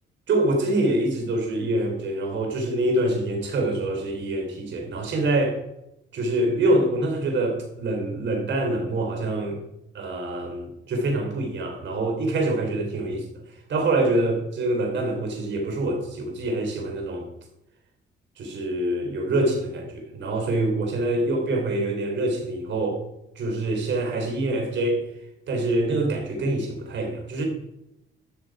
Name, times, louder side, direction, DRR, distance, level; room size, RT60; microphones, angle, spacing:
voice 1, 0.3-5.6 6.1-9.6 9.9-13.3 13.7-17.3 18.4-23.0 23.4-25.0 25.5-27.4, right 2 dB, 65° right, 2 dB, 3.7 m, -25 dB
12.5 x 6.5 x 4.9 m, 0.85 s
cardioid pair, 90°, 20 cm